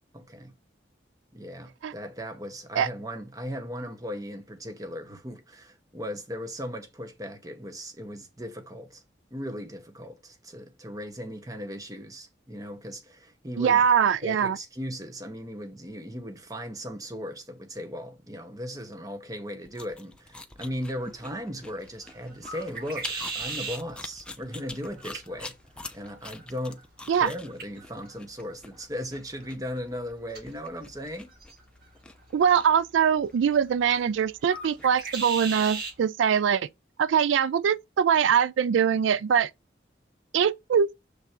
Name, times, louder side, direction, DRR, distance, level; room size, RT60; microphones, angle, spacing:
voice 1, 0.1-0.5 1.3-9.0 9.3-13.8 14.2-25.6 25.9-26.8 27.1-31.3, equal, 20° right, 0.9 m, -37 dB
voice 2, 13.6-14.6 27.1-27.3 32.3-36.7 37.0-39.5 40.3-40.9, right 7 dB, 90° right, 0.3 m, -22 dB
sound 1, 19.6-35.3, left 2 dB, 5° left, 0.5 m, -45 dB
sound 2, 20.6-36.0, right 4 dB, 55° right, 1.8 m, -41 dB
6.7 x 3.7 x 4.4 m
head